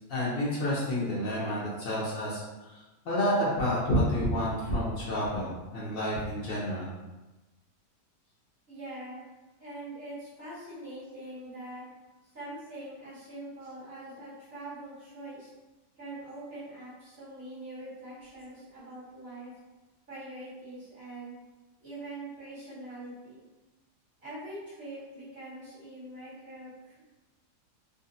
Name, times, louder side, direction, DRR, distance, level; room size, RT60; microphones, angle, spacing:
voice 1, 0.1-2.8 3.0-6.9, equal, 60° left, -8 dB, 1.2 m, -29 dB
voice 2, 8.7-9.3 9.6-11.8 12.3-15.5 16.0-19.5 20.1-21.4 21.8-23.4 24.2-26.9, right 1 dB, 40° right, -10 dB, 1.5 m, -43 dB
3.9 x 2.2 x 2.6 m, 1.1 s
omnidirectional pair, 1.7 m